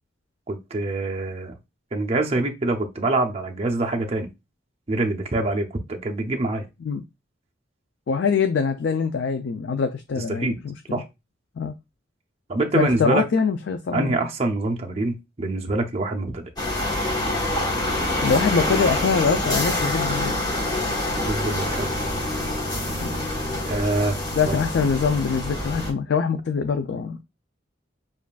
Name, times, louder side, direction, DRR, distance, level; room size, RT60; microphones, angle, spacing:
voice 1, 0.5-1.5 1.9-4.3 4.9-6.7 10.2-10.6 10.9-11.0 12.5-13.2 13.9-16.5 21.2-21.9 23.6-24.2 24.5-24.6, right 2 dB, 30° right, 0.7 m, -25 dB
voice 2, 8.1-10.7 11.6-11.7 12.7-14.2 18.2-20.4 23.0-23.1 24.3-27.2, left 5 dB, 65° left, 0.4 m, -23 dB
sound 1, 16.6-25.9, left 1 dB, 20° left, 1.1 m, -26 dB
7.1 x 2.5 x 2.3 m
head